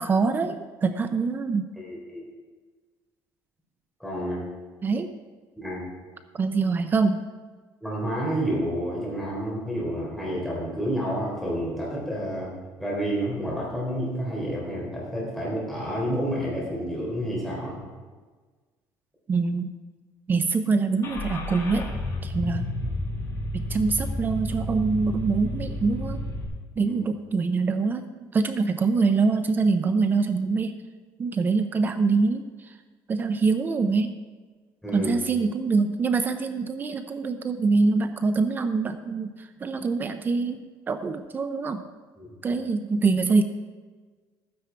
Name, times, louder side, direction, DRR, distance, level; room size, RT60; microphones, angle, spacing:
voice 1, 0.0-1.7 4.8-5.1 6.3-7.2 19.3-19.7 20.3-21.9 22.2-22.7 23.5-26.2 26.8-30.7 31.2-32.8 33.1-34.2 34.9-41.8 42.4-43.4, right 4 dB, 25° right, 9 dB, 0.6 m, -24 dB
voice 2, 1.8-2.2 4.0-4.4 5.6-5.9 7.8-12.5 12.8-17.8 26.9-27.0 34.8-35.1 42.2-42.3, equal, ahead, -5 dB, 3.7 m, -29 dB
Car / Engine starting, 21.0-26.4, left 1 dB, 40° left, 2.6 m, -31 dB
13.5 x 9.6 x 4.6 m, 1.4 s
cardioid pair, 145°, 8 cm